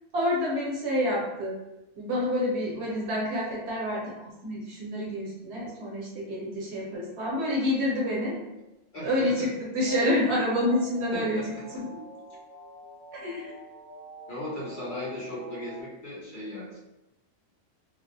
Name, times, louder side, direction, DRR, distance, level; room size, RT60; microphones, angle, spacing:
voice 1, 0.1-1.6 2.0-8.4 9.0-9.5 9.7-11.4 11.7-12.0 13.1-13.5, left 1 dB, 65° right, -4 dB, 0.9 m, -28 dB
voice 2, 8.9-9.5 11.1-11.6 14.3-16.8, left 1 dB, 50° left, -7 dB, 0.7 m, -37 dB
sound 1, 9.8-15.8, right 1 dB, 15° left, 0.4 m, -46 dB
2.3 x 2.0 x 2.6 m, 0.95 s
omnidirectional pair, 1.3 m